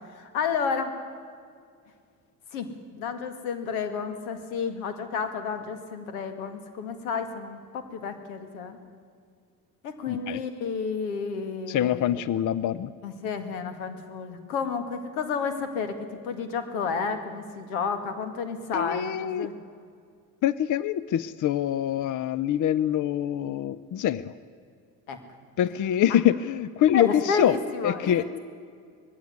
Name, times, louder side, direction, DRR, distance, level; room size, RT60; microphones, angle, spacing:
voice 1, 0.1-0.9 2.5-8.8 9.8-12.2 13.0-19.6 25.1-25.2 26.9-28.4, left 5 dB, 85° left, 8 dB, 2.1 m, -31 dB
voice 2, 10.1-10.4 11.7-12.9 18.7-19.5 20.4-24.3 25.6-27.6 27.8-28.3, left 11 dB, 45° left, 18 dB, 0.7 m, -25 dB
20.0 x 16.0 x 9.7 m, 2.2 s
hypercardioid pair, 65°, 42 cm